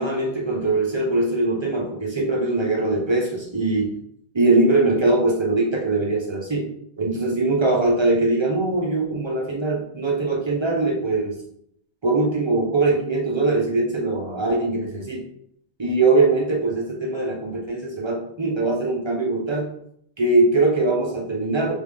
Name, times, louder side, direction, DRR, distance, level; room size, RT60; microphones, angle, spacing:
voice 1, 0.0-3.9 4.3-6.7 7.0-11.4 12.0-15.2 15.8-19.7 20.2-21.7, right 2 dB, 30° right, -2 dB, 0.8 m, -21 dB
3.6 x 3.4 x 3.4 m, 0.71 s
omnidirectional pair, 1.1 m